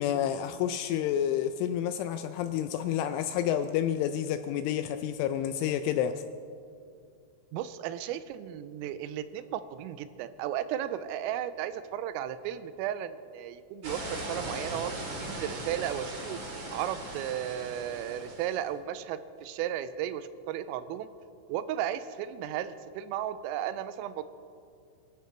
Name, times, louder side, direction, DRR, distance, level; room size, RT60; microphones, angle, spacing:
voice 1, 0.0-6.2, left 10 dB, 85° left, 9 dB, 2.8 m, -29 dB
voice 2, 7.5-14.9 15.2-16.4 16.7-21.1 21.5-24.2, right 11 dB, 85° right, 12 dB, 3.2 m, -34 dB
sound 1, 13.8-18.6, right 1 dB, 40° right, 1.9 m, -39 dB
24.0 x 13.0 x 4.5 m, 2.4 s
omnidirectional pair, 6.0 m